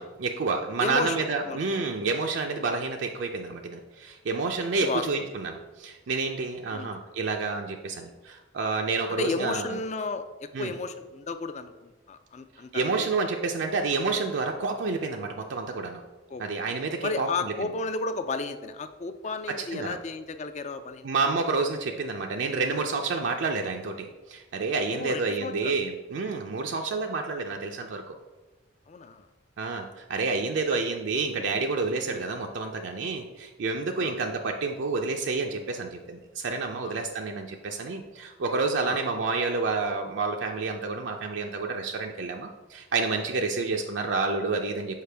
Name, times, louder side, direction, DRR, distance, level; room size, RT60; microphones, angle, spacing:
voice 1, 0.0-9.8 10.5-10.7 12.7-16.0 16.4-17.5 19.5-20.0 21.0-28.2 29.6-45.0, right 4 dB, 65° right, 2 dB, 0.4 m, -29 dB
voice 2, 0.8-1.6 4.7-5.3 6.7-6.9 9.2-13.1 16.3-16.4 17.0-21.1 24.9-25.8 26.6-26.8 28.9-29.3 32.1-32.2 34.0-34.2 36.8-36.9 38.8-39.0, left 3 dB, 35° left, 10 dB, 0.4 m, -33 dB
6.6 x 4.8 x 3.4 m, 1.2 s
head